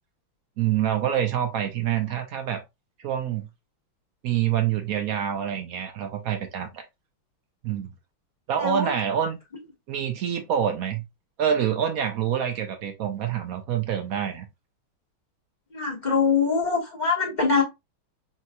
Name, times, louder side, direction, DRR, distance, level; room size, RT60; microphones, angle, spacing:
voice 1, 0.6-2.6 3.0-3.5 4.2-6.8 7.6-7.9 8.5-9.4 9.9-11.0 11.4-14.4, right 9 dB, 85° right, 0.7 m, -26 dB
voice 2, 8.6-8.9 15.7-17.6, left 5 dB, 25° left, 1.3 m, -23 dB
6.0 x 3.0 x 2.2 m
omnidirectional pair, 2.4 m